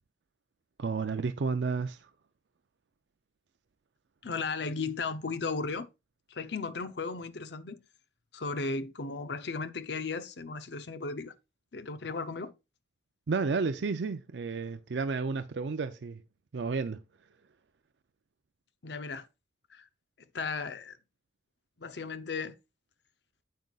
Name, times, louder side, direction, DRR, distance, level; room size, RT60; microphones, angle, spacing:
voice 1, 0.8-2.1 13.3-16.2 16.5-17.0, right 4 dB, 75° right, 0.5 m, -31 dB
voice 2, 4.2-5.9 6.3-7.8 8.3-11.3 11.7-12.5 18.8-19.3 19.7-19.9 20.3-21.0 21.8-22.5, left 4 dB, 65° left, 0.7 m, -35 dB
9.2 x 7.7 x 2.4 m
head